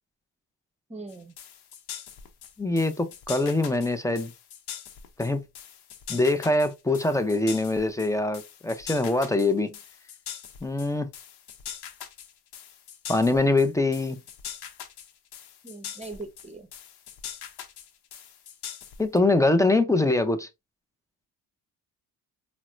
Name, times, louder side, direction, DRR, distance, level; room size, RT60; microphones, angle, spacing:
voice 1, 0.9-1.3 15.6-16.7, right 3 dB, 15° right, 0.9 m, -40 dB
sound 1, 1.1-19.2, left 9 dB, 65° left, 0.8 m, -42 dB
voice 2, 2.6-4.3 5.2-5.4 6.1-9.7 10.6-11.1 13.1-14.2 19.0-20.5, left 2 dB, 10° left, 0.5 m, -23 dB
4.1 x 2.1 x 2.4 m
supercardioid pair, 70°, 42 cm